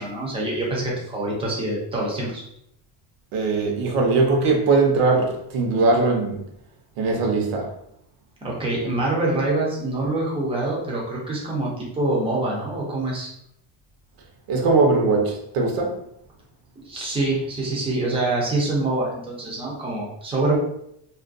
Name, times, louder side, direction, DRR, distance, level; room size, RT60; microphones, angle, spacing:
voice 1, 0.0-2.4 8.4-13.3 16.9-20.6, right 2 dB, 15° right, -4 dB, 0.3 m, -25 dB
voice 2, 3.3-6.4 7.0-7.7 14.5-16.0, right 3 dB, 85° right, 1 dB, 0.8 m, -20 dB
2.4 x 2.2 x 2.4 m, 0.75 s
cardioid pair, 160°, 50 cm